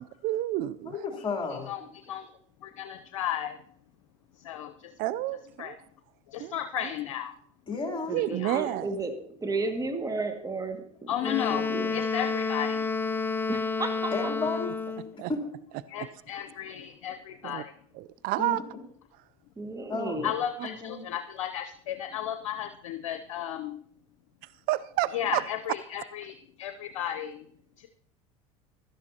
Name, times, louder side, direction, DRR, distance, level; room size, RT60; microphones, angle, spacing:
voice 1, 0.0-1.0 5.0-5.8 6.4-6.5 8.1-8.9 15.2-15.3 16.0-16.1 17.4-17.6 17.9-18.6 24.7-25.4, right 15 dB, 60° right, 15 dB, 0.5 m, -30 dB
voice 2, 0.9-1.7 7.7-8.2 14.1-14.7 15.0-15.4 18.4-18.6 19.9-20.2 20.6-21.1, left 3 dB, 30° left, 1 dB, 3.3 m, -32 dB
voice 3, 1.5-2.3 2.6-3.6 4.4-4.9 5.6-5.7 6.3-7.3 8.3-8.6 11.1-11.7 11.9-12.9 15.9-17.8 20.2-23.8 25.1-27.5 27.8-27.9, left 10 dB, 85° left, 7 dB, 0.7 m, -34 dB
voice 4, 8.1-12.0 13.5-14.1 19.6-20.4, right 3 dB, 20° right, 4 dB, 2.0 m, -33 dB
Wind instrument woodwind instrument, 11.2-15.1, left 4 dB, 10° left, 0.4 m, -30 dB
16.5 x 12.0 x 2.9 m, 0.64 s
hypercardioid pair, 85°, 17 cm